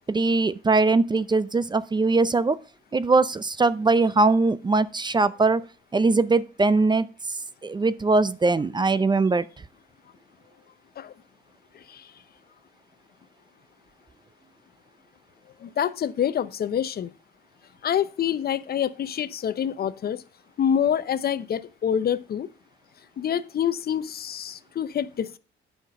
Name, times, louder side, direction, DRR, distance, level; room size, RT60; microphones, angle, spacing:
voice 1, 0.1-2.6 2.9-5.6 5.9-7.1 7.6-9.4, right 3 dB, 20° right, 0.5 m, -21 dB
voice 2, 11.7-12.1 15.6-17.1 17.8-20.2 20.6-22.5 23.2-25.4, left 9 dB, 50° left, 0.7 m, -26 dB
8.9 x 5.9 x 5.2 m
cardioid pair, 90°, 20 cm